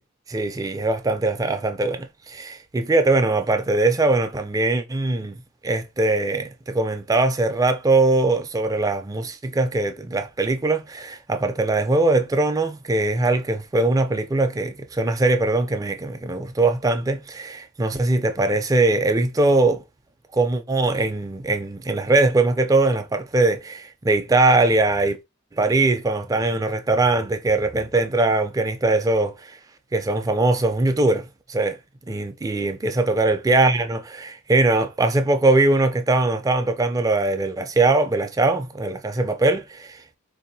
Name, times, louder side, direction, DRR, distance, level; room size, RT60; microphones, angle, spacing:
voice 1, 0.3-5.4 5.6-19.8 20.3-25.2 25.6-29.6 29.9-31.8 32.1-40.2, right 2 dB, 15° right, 0.3 m, -21 dB
3.9 x 2.7 x 2.7 m
head